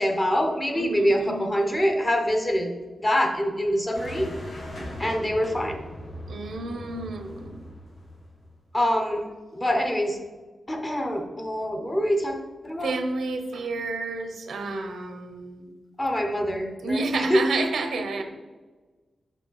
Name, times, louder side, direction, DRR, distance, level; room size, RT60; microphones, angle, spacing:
voice 1, 0.0-2.7 3.0-4.3 5.0-5.8 8.7-9.2 9.5-10.2 10.7-13.0 16.0-17.0 17.3-17.4, equal, 15° left, 4 dB, 0.8 m, -25 dB
voice 2, 0.7-1.5 6.3-7.5 12.8-15.7 16.8-18.2, right 3 dB, 75° right, 6 dB, 0.7 m, -30 dB
sound 1, 3.9-8.6, left 1 dB, 60° left, 1.8 m, -39 dB
6.0 x 5.0 x 3.9 m, 1.3 s
wide cardioid pair, 160°, 0 cm